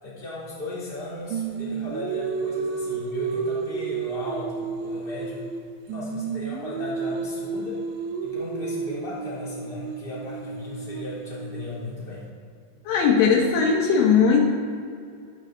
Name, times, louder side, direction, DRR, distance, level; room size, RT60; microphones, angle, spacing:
voice 1, 0.0-5.4 5.9-7.8 8.2-12.2, left 2 dB, 15° left, -7 dB, 2.9 m, -36 dB
Singing, 1.3-5.6 5.9-11.9, right 5 dB, 80° right, 3.0 m, -31 dB
voice 2, 12.9-14.4, left 6 dB, 90° left, 0 dB, 1.9 m, -19 dB
14.0 x 12.0 x 3.9 m, 2.4 s
omnidirectional pair, 5.7 m